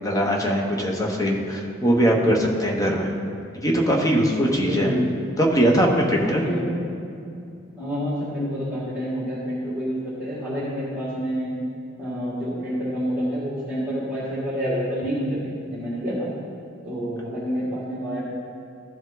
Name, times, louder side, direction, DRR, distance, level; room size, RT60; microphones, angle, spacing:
voice 1, 0.0-3.1 3.5-4.9 5.4-6.4, equal, 15° left, 0 dB, 0.9 m, -21 dB
voice 2, 4.6-5.1 6.2-6.9 7.8-11.5 12.0-16.3 16.8-18.2, equal, 5° right, -14 dB, 2.1 m, -28 dB
15.0 x 5.0 x 3.9 m, 2.5 s
head